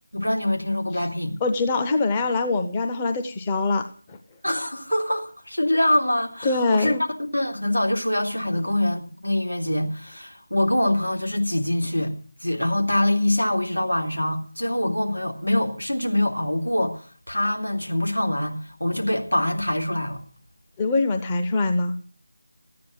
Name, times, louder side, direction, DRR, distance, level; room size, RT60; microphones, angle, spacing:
voice 1, 0.1-1.4 4.4-7.0 7.3-12.1 12.4-20.2, left 1 dB, 85° left, 3.2 m, -24 dB
voice 2, 1.4-4.2 6.4-7.0 20.8-21.9, left 3 dB, 15° left, 0.7 m, -23 dB
14.0 x 9.5 x 7.8 m
figure-of-eight pair, 165°, 0 cm